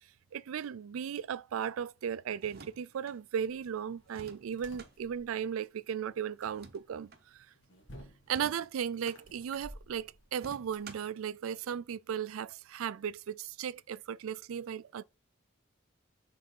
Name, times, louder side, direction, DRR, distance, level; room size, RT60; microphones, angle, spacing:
voice 1, 0.3-7.5 8.3-15.0, right 8 dB, 85° right, 0.4 m, -36 dB
sound 1, 2.4-3.2 4.1-4.9 6.4-7.2 8.3-9.2 10.3-11.2, right 4 dB, 45° right, 0.8 m, -52 dB
sound 2, 3.5-10.8, equal, 60° left, 1.6 m, -56 dB
6.6 x 3.4 x 5.3 m
head